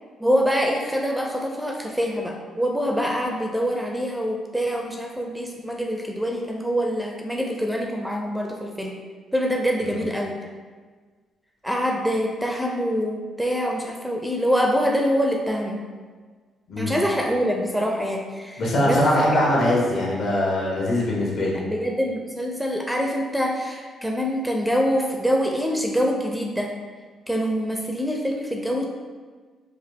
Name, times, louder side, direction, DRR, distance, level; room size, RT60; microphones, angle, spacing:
voice 1, 0.2-8.9 9.3-10.4 11.6-15.8 16.8-19.0 19.3-19.4 21.5-26.7 27.3-28.9, equal, ahead, 1 dB, 0.5 m, -25 dB
voice 2, 18.6-21.6, left 1 dB, 65° left, -4 dB, 1.4 m, -22 dB
4.9 x 2.4 x 3.5 m, 1.5 s
cardioid pair, 90°, 0 cm